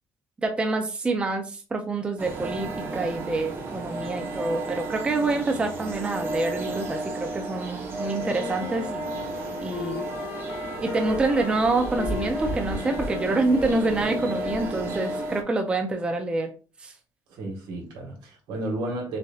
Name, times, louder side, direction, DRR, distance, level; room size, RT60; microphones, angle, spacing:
voice 1, 0.4-9.0 9.6-10.0 10.8-16.5 16.8-16.9, right 2 dB, 15° right, 0.4 m, -27 dB
sound 1, 2.2-15.4, right 2 dB, 30° right, 1.0 m, -33 dB
Wind instrument woodwind instrument, 8.2-14.9, left 7 dB, 85° left, 1.1 m, -38 dB
voice 2, 17.3-19.2, right 1 dB, 80° right, 1.8 m, -33 dB
6.4 x 2.7 x 2.4 m
cardioid pair, 175°, 7 cm